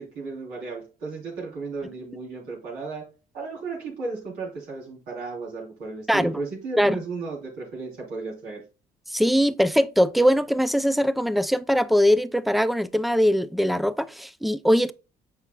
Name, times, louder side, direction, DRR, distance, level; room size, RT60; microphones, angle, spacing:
voice 1, 0.0-3.1 3.3-8.6, right 3 dB, 85° right, 3.8 m, -34 dB
voice 2, 6.1-6.4 6.8-7.0 9.1-14.9, equal, ahead, 0.3 m, -21 dB
8.1 x 5.7 x 2.4 m
cardioid pair, 110°, 17 cm